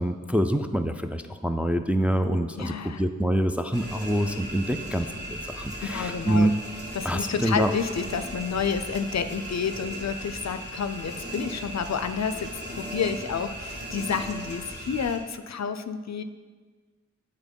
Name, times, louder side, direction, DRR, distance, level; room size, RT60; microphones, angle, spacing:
voice 1, 0.0-6.5 7.0-7.7, right 1 dB, 5° right, 6 dB, 0.3 m, -26 dB
voice 2, 2.5-3.0 5.9-6.5 6.9-16.2, left 6 dB, 65° left, 11 dB, 0.4 m, -30 dB
sound 1, 3.7-15.2, right 1 dB, 35° right, 1.5 m, -37 dB
8.2 x 4.2 x 5.2 m, 1.4 s
wide cardioid pair, 75°, 29 cm